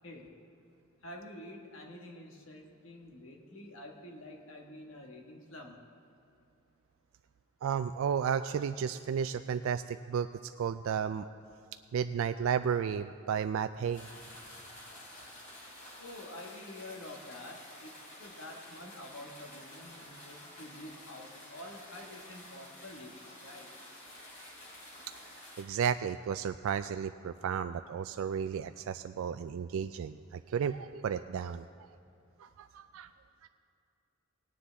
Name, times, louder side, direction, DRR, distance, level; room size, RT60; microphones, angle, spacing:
voice 1, 0.0-0.4 1.0-5.8 16.0-23.7, left 1 dB, 65° left, 1 dB, 1.6 m, -48 dB
voice 2, 7.6-10.3 10.6-11.3 11.9-14.1 25.6-31.9 32.4-33.1 33.4-33.5, right 7 dB, 70° right, 9 dB, 0.3 m, -33 dB
sound 1, 13.9-25.6, left 1 dB, 45° left, 3.0 m, -50 dB
18.5 x 9.8 x 3.4 m, 2.6 s
head